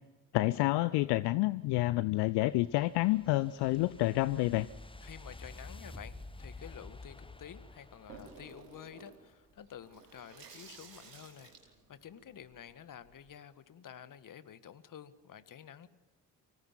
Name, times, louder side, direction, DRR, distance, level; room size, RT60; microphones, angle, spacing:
voice 1, 0.3-4.7, left 19 dB, 60° left, 17 dB, 0.7 m, -29 dB
sound 1, 1.9-9.2, left 2 dB, 10° left, 1.3 m, -50 dB
voice 2, 5.0-11.5 11.9-15.9, left 9 dB, 40° left, 13 dB, 1.7 m, -50 dB
Water tap faucet / Sink (filling or washing), 8.1-13.3, right 5 dB, 80° right, 3.2 m, -55 dB
25.0 x 18.0 x 9.1 m, 1.2 s
figure-of-eight pair, 40°, 47 cm